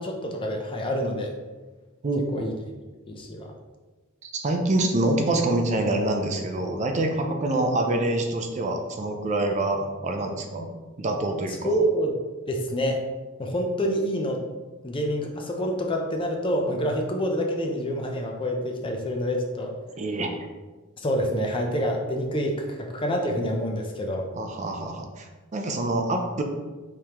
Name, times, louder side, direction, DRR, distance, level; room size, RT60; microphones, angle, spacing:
voice 1, 0.0-1.3 2.3-2.5 3.1-3.5 11.6-12.2 12.5-13.0 13.4-14.4 14.8-19.7 21.0-24.3, equal, 25° left, 2 dB, 0.5 m, -27 dB
voice 2, 2.0-2.5 4.2-10.7 11.0-11.7 20.0-20.3 24.3-26.4, right 2 dB, 35° right, 3 dB, 0.5 m, -26 dB
4.7 x 3.5 x 2.9 m, 1.3 s
head